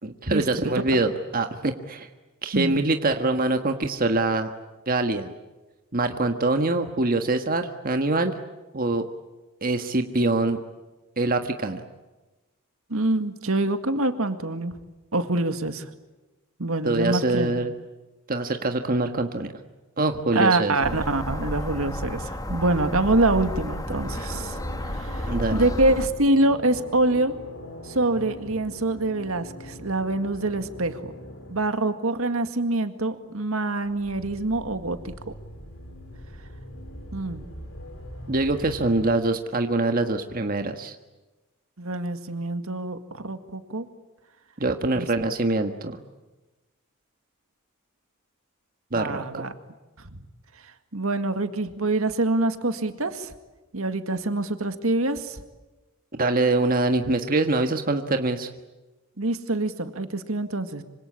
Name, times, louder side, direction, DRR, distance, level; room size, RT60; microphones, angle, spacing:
voice 1, 0.0-2.1 2.4-4.5 4.9-5.3 5.9-8.3 8.7-9.0 9.6-10.6 11.2-11.8 16.8-17.7 18.3-19.5 20.0-21.0 25.3-25.6 38.3-40.9 44.6-45.9 48.9-49.4 56.2-58.5, right 2 dB, 40° right, 6 dB, 1.5 m, -24 dB
voice 2, 12.9-14.7 15.1-15.9 16.6-17.5 20.3-24.6 24.9-27.3 27.8-31.1 31.5-35.1 37.1-37.4 41.8-43.9 45.0-45.1 48.9-49.5 50.0-50.2 50.9-53.3 53.7-55.4 59.2-60.8, right 2 dB, 70° right, 9 dB, 2.1 m, -25 dB
sound 1, 20.8-26.1, equal, 15° left, 1.7 m, -31 dB
sound 2, 24.0-31.8 33.8-39.1, equal, 65° left, 6.1 m, -42 dB
26.0 x 26.0 x 8.6 m, 1.1 s
head